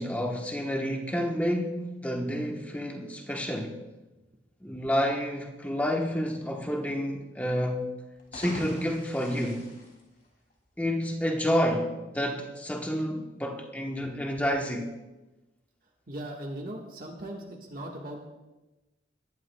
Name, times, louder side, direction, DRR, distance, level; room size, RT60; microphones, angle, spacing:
voice 1, 0.0-3.8 4.6-7.9 8.3-9.7 10.8-14.9, equal, 10° left, 1.0 m, -29 dB
sound 1, 8.1-10.7, left 1 dB, 50° left, 2.7 m, -43 dB
voice 2, 16.1-18.3, right 1 dB, 50° right, 1.4 m, -39 dB
19.5 x 11.0 x 2.2 m
head